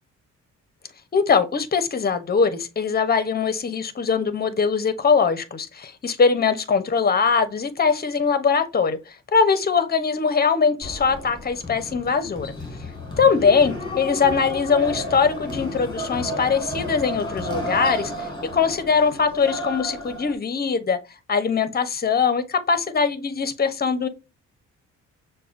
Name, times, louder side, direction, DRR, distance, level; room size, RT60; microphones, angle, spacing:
voice 1, 1.1-12.5 13.2-21.0 21.3-24.1, left 5 dB, 30° left, 0.8 m, -21 dB
sound 1, 10.8-20.3, equal, 15° left, 1.5 m, -32 dB
6.5 x 2.2 x 2.5 m
cardioid pair, 90°, 30 cm